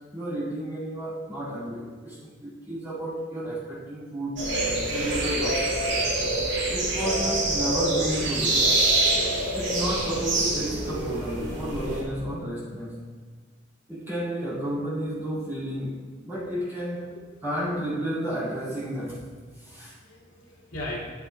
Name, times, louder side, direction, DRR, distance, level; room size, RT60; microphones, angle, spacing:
voice 1, 0.1-4.5 4.9-5.7 6.6-8.6 9.5-13.0 13.9-17.0 17.4-19.2 19.6-19.9, right 1 dB, 15° right, -12 dB, 2.1 m, -32 dB
sound 1, 4.4-12.0, right 2 dB, 65° right, 2.2 m, -25 dB
voice 2, 16.3-16.6 17.0-17.4 19.7-21.0, left 1 dB, 80° left, -4 dB, 2.4 m, -40 dB
11.5 x 8.1 x 2.2 m, 1.5 s
head